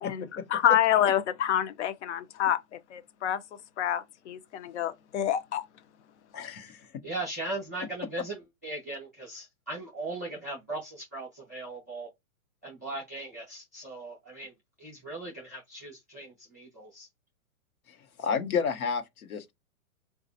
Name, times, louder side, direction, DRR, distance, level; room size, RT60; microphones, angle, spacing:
voice 1, 0.0-3.4 3.8-5.6 6.4-6.6, left 10 dB, 55° left, 0.6 m, -27 dB
voice 2, 6.3-6.8 17.9-19.5, left 6 dB, 85° left, 1.0 m, -31 dB
voice 3, 7.0-12.1 12.6-14.5 14.8-17.1, right 2 dB, 15° right, 0.3 m, -38 dB
4.0 x 2.4 x 2.6 m
hypercardioid pair, 165°, 42 cm